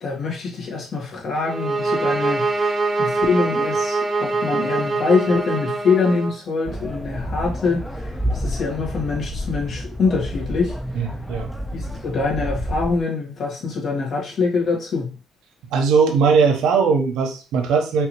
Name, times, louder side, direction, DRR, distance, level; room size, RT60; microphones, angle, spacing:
voice 1, 0.0-10.7 11.7-15.2, left 4 dB, 55° left, 1.8 m, -24 dB
sound 1, 1.5-6.4, right 3 dB, 30° right, 0.9 m, -23 dB
sound 2, 6.6-13.0, equal, ahead, 0.6 m, -29 dB
voice 2, 10.9-11.6 15.7-18.1, right 5 dB, 85° right, 0.9 m, -19 dB
5.3 x 2.8 x 3.0 m
cardioid pair, 80°, 0 cm